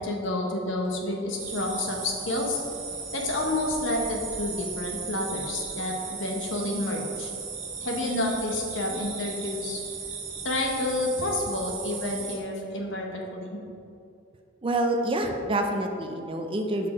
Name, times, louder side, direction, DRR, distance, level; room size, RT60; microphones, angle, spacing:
voice 1, 0.0-2.6 3.1-7.3 7.8-9.8 10.4-13.6, left 2 dB, 70° left, 0 dB, 1.0 m, -29 dB
sound 1, 1.4-12.4, right 5 dB, 80° right, 1.0 m, -36 dB
voice 2, 14.6-16.9, right 1 dB, 30° right, 4 dB, 0.5 m, -27 dB
5.8 x 4.6 x 4.9 m, 2.5 s
head